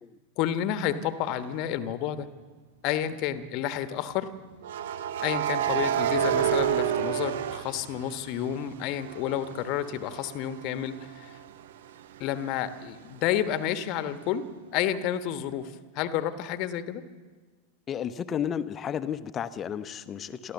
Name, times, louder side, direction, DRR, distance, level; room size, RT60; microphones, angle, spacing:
voice 1, 0.4-2.3 2.8-4.3 5.2-11.3 12.2-14.5 14.7-17.0, left 10 dB, 40° left, 11 dB, 1.2 m, -30 dB
sound 1, 1.3-1.6 4.6-8.5 8.9-12.5, right 9 dB, 55° right, 0.7 m, -30 dB
voice 2, 17.9-20.5, left 8 dB, 25° left, 12 dB, 0.9 m, -32 dB
27.5 x 13.5 x 7.0 m, 1.4 s
figure-of-eight pair, 90°, 0 cm